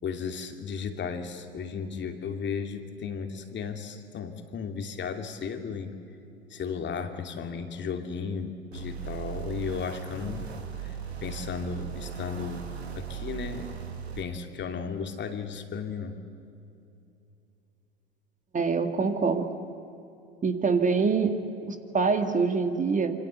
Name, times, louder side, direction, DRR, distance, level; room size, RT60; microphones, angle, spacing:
voice 1, 0.0-6.0 6.5-10.5 10.8-12.7 12.9-13.7 14.2-16.2, left 6 dB, 35° left, 6 dB, 2.7 m, -35 dB
sound 1, 8.7-14.2, right 8 dB, 85° right, 2.8 m, -38 dB
voice 2, 18.5-19.5 20.4-21.4 21.7-23.1, right 5 dB, 25° right, 7 dB, 2.1 m, -25 dB
26.5 x 25.5 x 8.3 m, 2.8 s
hypercardioid pair, 80°, 31 cm